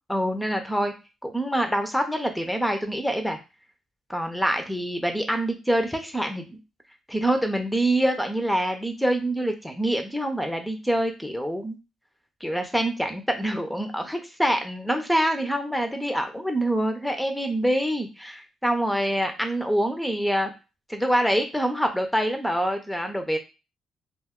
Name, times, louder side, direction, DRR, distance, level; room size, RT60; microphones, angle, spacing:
voice 1, 0.1-0.9 1.2-3.4 4.1-6.6 7.1-11.8 12.4-20.5 20.9-23.4, right 1 dB, ahead, 5 dB, 0.5 m, -25 dB
2.5 x 2.2 x 3.5 m, 0.29 s
cardioid pair, 90°, 0 cm